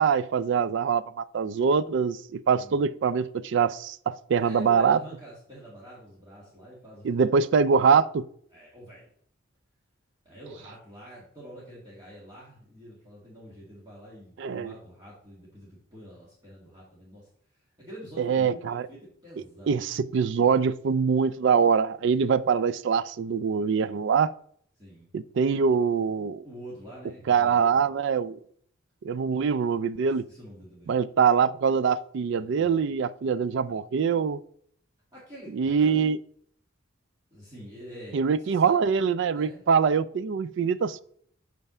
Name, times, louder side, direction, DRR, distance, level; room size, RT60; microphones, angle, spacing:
voice 1, 0.0-5.0 7.0-8.3 14.4-14.7 18.2-18.9 19.7-24.3 25.1-26.4 27.3-28.4 29.0-30.3 30.9-34.4 35.5-36.2 38.1-41.0, right 6 dB, 55° right, 0.3 m, -24 dB
voice 2, 4.3-7.1 8.5-9.1 10.2-20.1 24.8-25.1 26.4-27.9 30.3-31.0 32.3-32.9 35.1-36.0 37.3-38.8 39.3-39.6, right 1 dB, 20° right, 1.8 m, -46 dB
5.5 x 4.6 x 6.0 m
head